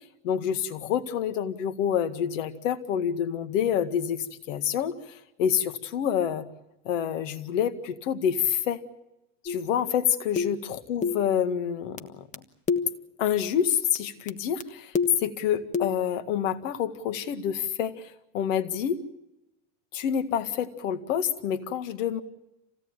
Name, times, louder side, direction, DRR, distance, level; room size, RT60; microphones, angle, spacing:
voice 1, 0.2-6.5 6.9-8.8 9.4-12.4 13.2-19.0 19.9-22.2, left 9 dB, 85° left, 10 dB, 2.0 m, -27 dB
sound 1, 9.5-9.7 10.4-10.7 11.0-11.3 12.0-12.1 12.3-12.4 12.7-13.0 13.9-14.0 14.3-14.4 14.6-14.7 14.9-15.3 15.7-16.0, left 5 dB, 20° left, 1.5 m, -28 dB
27.0 x 17.5 x 8.9 m, 0.93 s
supercardioid pair, 115°, 37 cm